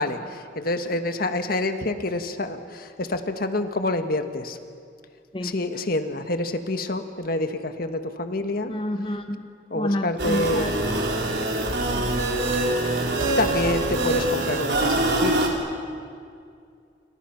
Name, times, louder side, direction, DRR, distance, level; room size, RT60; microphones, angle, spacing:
voice 1, 0.0-4.6 5.4-8.7 9.7-10.7 12.7-15.5, left 2 dB, 55° left, 8 dB, 1.5 m, -27 dB
voice 2, 8.7-9.4 9.7-11.2 11.8-12.2, left 1 dB, 30° left, 6 dB, 1.3 m, -30 dB
sound 1, 10.2-15.5, right 1 dB, 70° right, 4.3 m, -24 dB
29.5 x 29.0 x 6.0 m, 2.3 s
head